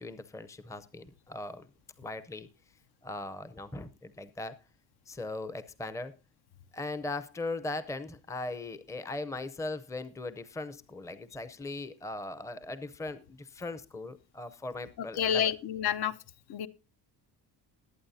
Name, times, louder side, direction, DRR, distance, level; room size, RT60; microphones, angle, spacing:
voice 1, 0.0-1.7 2.0-2.5 3.0-4.6 5.1-6.1 6.7-15.5, left 2 dB, 5° left, 13 dB, 0.6 m, -39 dB
voice 2, 15.2-16.1 16.5-16.7, left 9 dB, 65° left, 12 dB, 0.8 m, -28 dB
20.5 x 8.8 x 2.7 m, 0.29 s
cardioid pair, 150°, 42 cm